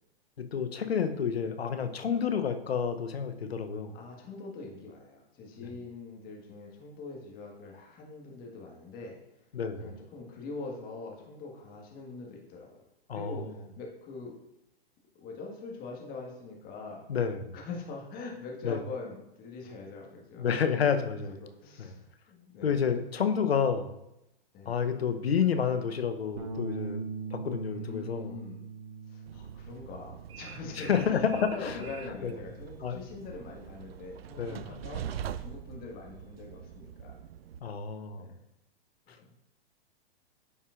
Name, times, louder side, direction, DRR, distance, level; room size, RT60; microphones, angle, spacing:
voice 1, 0.5-3.9 5.6-5.7 9.5-9.9 13.1-13.5 17.1-17.5 18.6-18.8 20.4-21.3 21.8-21.9 22.6-23.9 24.7-28.4 30.8-31.9 32.2-32.3 32.8-33.0 34.4-34.6 37.6-38.2, left 7 dB, 85° left, 8 dB, 0.8 m, -29 dB
voice 2, 3.9-9.4 9.8-12.8 13.1-14.4 15.1-17.1 17.5-20.4 21.0-22.9 24.5-24.8 27.6-28.6 29.1-37.2 38.1-38.3 39.2-39.3, left 3 dB, 30° left, -1 dB, 1.6 m, -43 dB
Bass guitar, 26.4-32.6, right 4 dB, 40° right, 1.0 m, -42 dB
Train, 29.3-37.6, right 9 dB, 75° right, 0.5 m, -43 dB
9.5 x 5.5 x 2.5 m, 0.87 s
hypercardioid pair, 115°, 30 cm